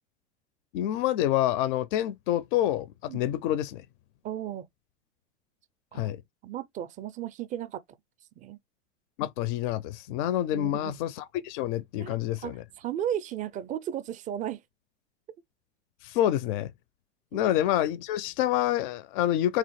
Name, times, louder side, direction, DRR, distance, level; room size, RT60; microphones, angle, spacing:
voice 1, 0.7-3.8 5.9-6.2 9.2-12.6 16.0-16.7 17.3-19.6, left 12 dB, 50° left, 0.4 m, -27 dB
voice 2, 4.2-4.7 5.9-6.1 6.4-7.8 8.4-8.6 10.5-11.0 12.0-12.2 12.4-14.6 17.3-17.5, right 10 dB, 25° right, 0.4 m, -35 dB
3.6 x 2.9 x 3.0 m
hypercardioid pair, 95°, 35 cm